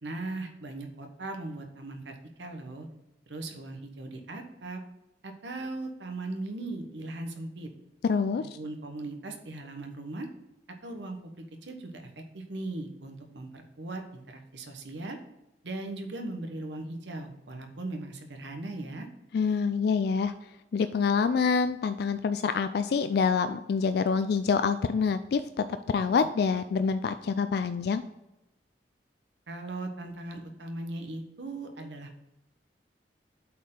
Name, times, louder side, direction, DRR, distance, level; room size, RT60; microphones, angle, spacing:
voice 1, 0.0-2.9 3.3-4.8 5.2-7.7 8.4-10.3 10.8-15.2 15.6-19.1 29.5-32.2, right 2 dB, 80° right, 4 dB, 1.1 m, -39 dB
voice 2, 8.0-8.4 19.3-20.3 20.7-28.0, left 5 dB, 60° left, 10 dB, 0.3 m, -26 dB
8.2 x 4.4 x 3.8 m, 0.92 s
head